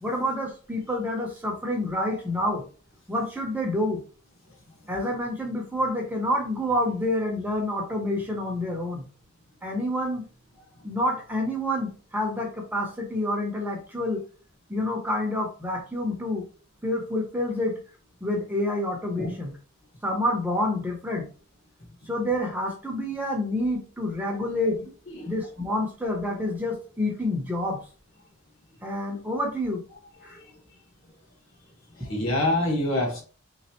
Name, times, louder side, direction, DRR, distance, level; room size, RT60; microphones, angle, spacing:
voice 1, 0.0-2.6 3.1-4.0 4.9-9.0 9.6-10.2 10.8-14.2 14.7-16.4 16.8-17.7 18.2-19.5 20.0-21.3 22.0-24.8 25.3-27.8 28.8-29.8 30.2-30.4, left 1 dB, 10° right, 0 dB, 0.6 m, -28 dB
voice 2, 31.9-33.2, left 1 dB, 55° left, -2 dB, 1.4 m, -27 dB
3.4 x 3.2 x 2.9 m, 0.39 s
head